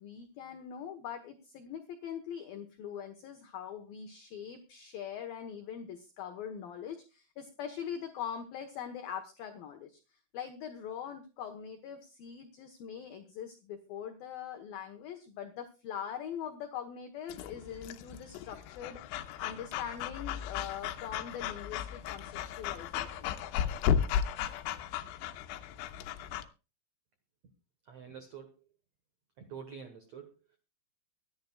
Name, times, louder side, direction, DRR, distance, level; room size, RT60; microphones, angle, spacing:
voice 1, 0.0-10.0 10.3-23.3, left 8 dB, 65° left, 5 dB, 2.5 m, -42 dB
Breathing / Dog, 17.3-26.4, left 9 dB, 85° left, 3.3 m, -35 dB
voice 2, 27.9-28.7 29.4-30.4, right 7 dB, 80° right, 7 dB, 1.5 m, -47 dB
24.0 x 10.5 x 2.4 m, 0.31 s
omnidirectional pair, 5.4 m